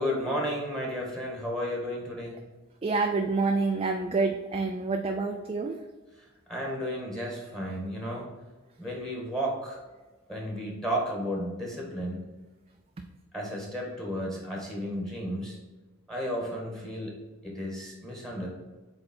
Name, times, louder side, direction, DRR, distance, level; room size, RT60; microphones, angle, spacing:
voice 1, 0.0-2.4 6.2-8.3 8.8-9.8 10.3-12.2 13.3-15.6 16.1-17.2 17.4-18.5, equal, 5° left, -2 dB, 1.5 m, -33 dB
voice 2, 2.8-5.8, right 3 dB, 30° right, 4 dB, 0.4 m, -27 dB
8.2 x 3.3 x 4.3 m, 1.2 s
head